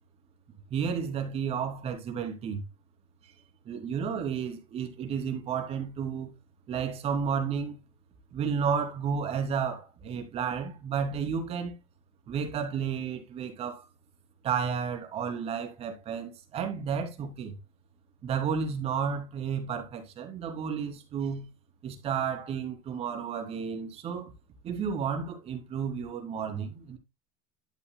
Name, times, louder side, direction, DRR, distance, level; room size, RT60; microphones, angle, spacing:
voice 1, 0.7-2.6 3.6-6.3 6.7-7.8 8.3-11.8 12.3-13.8 14.4-17.6 18.2-21.5 21.8-24.3 24.6-27.0, right 6 dB, 35° right, 3.1 m, -32 dB
12.0 x 8.1 x 2.3 m
supercardioid pair, 135°, 17 cm